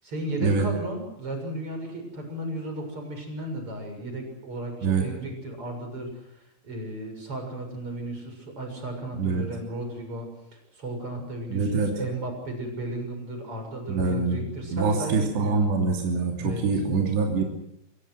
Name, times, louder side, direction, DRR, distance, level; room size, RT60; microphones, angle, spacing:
voice 1, 0.0-15.7 16.4-16.8, right 1 dB, 30° right, 4 dB, 7.7 m, -35 dB
voice 2, 9.1-9.4 11.5-11.9 13.9-17.4, right 4 dB, 70° right, 1 dB, 5.2 m, -25 dB
27.0 x 22.5 x 6.4 m, 0.80 s
omnidirectional pair, 5.1 m